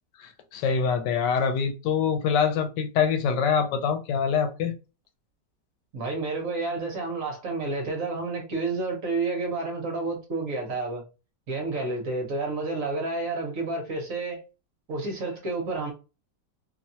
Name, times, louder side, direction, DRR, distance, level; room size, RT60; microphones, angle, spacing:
voice 1, 0.2-4.7, left 6 dB, 80° left, 1.2 m, -25 dB
voice 2, 5.9-11.0 11.5-14.4 14.9-15.9, right 3 dB, 55° right, 1.1 m, -30 dB
2.9 x 2.2 x 2.7 m
omnidirectional pair, 1.9 m